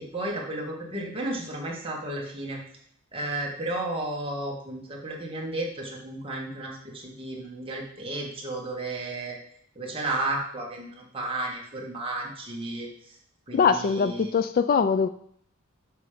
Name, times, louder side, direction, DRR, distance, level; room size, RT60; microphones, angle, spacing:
voice 1, 0.0-2.6 3.1-9.4 9.8-13.1 13.5-14.3, right 2 dB, 25° right, -2 dB, 1.8 m, -33 dB
voice 2, 13.5-15.1, left 6 dB, 45° left, 12 dB, 0.3 m, -22 dB
6.7 x 5.2 x 5.1 m, 0.64 s
head